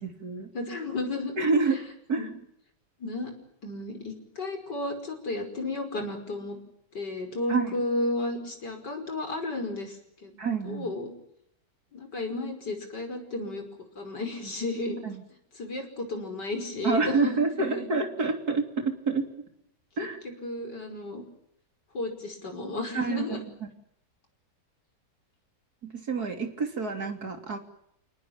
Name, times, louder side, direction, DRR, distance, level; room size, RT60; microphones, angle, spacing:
voice 1, 0.0-0.5 1.4-1.8 2.1-2.3 7.5-7.8 10.4-10.9 15.0-15.2 16.8-19.5 20.0-20.2 22.9-23.7 25.8-27.6, right 4 dB, 60° right, 6 dB, 3.7 m, -28 dB
voice 2, 0.5-1.3 2.1-2.3 3.0-3.3 3.6-6.6 6.9-10.4 10.6-11.1 11.9-13.7 14.0-15.0 15.6-17.9 20.2-21.2 21.9-23.4, left 2 dB, 75° left, 5 dB, 6.0 m, -33 dB
30.0 x 19.0 x 9.0 m, 0.75 s
omnidirectional pair, 1.8 m